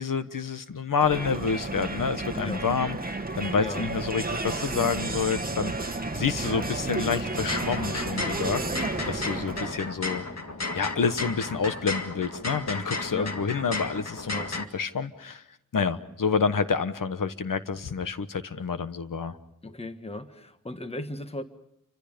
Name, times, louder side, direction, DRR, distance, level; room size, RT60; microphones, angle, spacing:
voice 1, 0.0-10.2 10.7-14.4 14.7-15.4 15.7-19.4, left 5 dB, 80° left, 11 dB, 1.3 m, -28 dB
Crowd, 1.0-9.9, right 2 dB, 25° right, 1.3 m, -32 dB
voice 2, 3.5-3.9 9.3-9.5 13.1-13.4 14.3-14.6 19.6-21.4, left 2 dB, 20° left, 9 dB, 1.4 m, -37 dB
sound 1, 7.3-14.6, left 3 dB, 55° left, 2.1 m, -34 dB
29.0 x 25.5 x 5.2 m, 0.76 s
wide cardioid pair, 80°, 32 cm